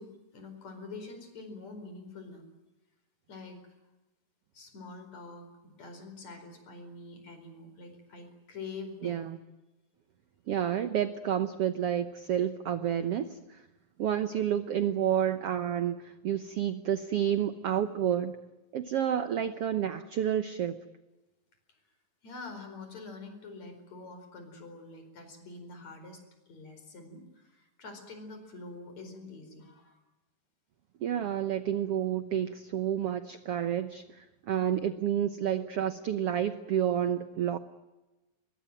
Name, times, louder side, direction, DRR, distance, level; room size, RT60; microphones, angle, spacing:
voice 1, 0.0-2.5 3.3-3.6 4.5-9.2 21.7-21.8 22.2-30.0 34.5-34.9, left 3 dB, 50° left, 7 dB, 5.9 m, -46 dB
voice 2, 9.0-9.4 10.5-13.4 14.0-18.4 18.7-20.8 31.0-37.6, right 10 dB, 75° right, 11 dB, 1.4 m, -30 dB
24.5 x 22.5 x 9.1 m, 1.1 s
omnidirectional pair, 4.1 m